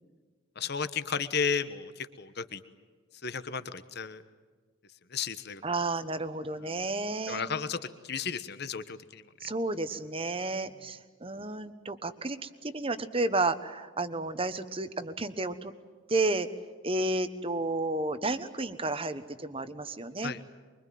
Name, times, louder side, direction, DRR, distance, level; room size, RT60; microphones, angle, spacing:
voice 1, 0.6-2.6 3.2-4.2 5.1-5.6 7.3-7.8 8.0-9.2 20.2-20.4, left 6 dB, 50° left, 11 dB, 1.2 m, -33 dB
voice 2, 5.6-7.5 9.4-15.7 16.1-16.5 16.8-20.3, right 2 dB, 25° right, 11 dB, 1.2 m, -32 dB
24.5 x 24.0 x 9.3 m, 1.5 s
head